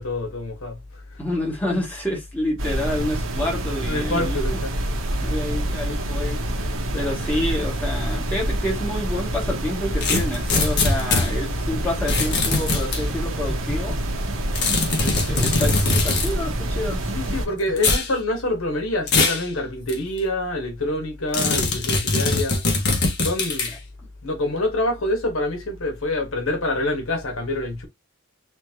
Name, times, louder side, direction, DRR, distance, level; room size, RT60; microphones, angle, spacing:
voice 1, 0.0-1.2 3.9-4.7 7.2-7.4 15.2-15.3 17.1-22.6 23.2-23.7 24.2-27.9, left 1 dB, 75° left, 1.6 m, -26 dB
voice 2, 1.2-4.6 5.2-6.4 6.9-14.0 15.0-17.0, left 1 dB, 10° left, 2.3 m, -28 dB
sound 1, 2.6-17.5, right 1 dB, 65° right, 1.3 m, -26 dB
sound 2, 10.0-11.3 12.1-13.0 14.5-16.3 17.8-18.1 19.1-19.4 19.9-20.0 21.3-23.7, left 3 dB, 55° left, 1.5 m, -21 dB
sound 3, 13.1-18.0, right 1 dB, 15° right, 1.6 m, -38 dB
4.4 x 3.4 x 2.9 m
head